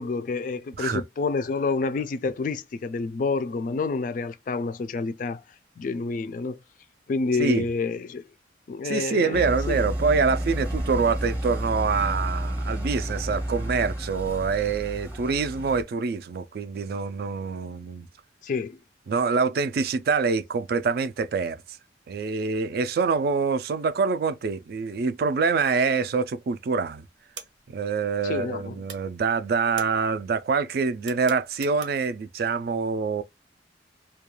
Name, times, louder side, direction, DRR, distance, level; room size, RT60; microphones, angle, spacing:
voice 1, 0.0-5.4 5.8-6.6 7.1-8.3 8.7-9.8 18.4-18.8 28.2-28.8, left 4 dB, 45° left, 0.3 m, -28 dB
voice 2, 8.8-18.1 19.1-21.8 22.1-27.1 27.7-33.2, right 5 dB, 55° right, 0.3 m, -25 dB
sound 1, 9.3-15.8, right 1 dB, 10° right, 0.7 m, -30 dB
sound 2, 27.3-28.6 28.8-32.2, right 6 dB, 90° right, 0.7 m, -44 dB
2.3 x 2.2 x 3.0 m
head